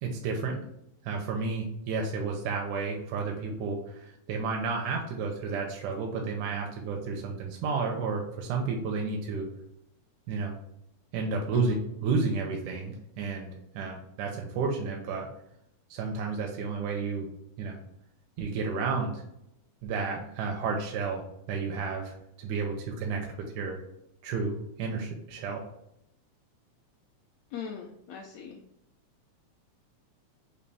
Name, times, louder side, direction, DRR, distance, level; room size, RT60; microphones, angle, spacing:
voice 1, 0.0-0.6 1.0-9.5 10.3-10.6 11.1-11.7 12.0-15.3 15.9-17.3 17.6-17.8 18.4-19.2 19.8-23.3 23.5-23.8 24.2-25.6, right 4 dB, 90° right, 1 dB, 2.1 m, -31 dB
voice 2, 27.5-28.6, left 7 dB, 80° left, -1 dB, 1.5 m, -39 dB
5.2 x 2.5 x 3.3 m, 0.81 s
omnidirectional pair, 3.4 m